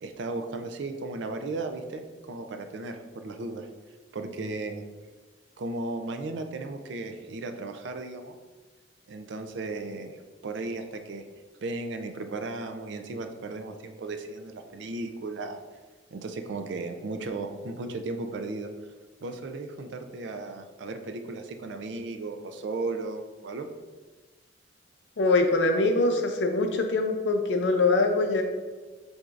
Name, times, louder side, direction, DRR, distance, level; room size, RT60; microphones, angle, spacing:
voice 1, 0.0-3.7 4.1-4.8 5.6-8.4 9.1-10.2 10.4-11.3 11.6-15.6 16.1-18.7 19.2-23.7, right 3 dB, 70° right, 6 dB, 0.4 m, -35 dB
voice 2, 25.2-28.4, left 3 dB, 70° left, 4 dB, 0.5 m, -23 dB
7.5 x 2.7 x 2.4 m, 1.3 s
head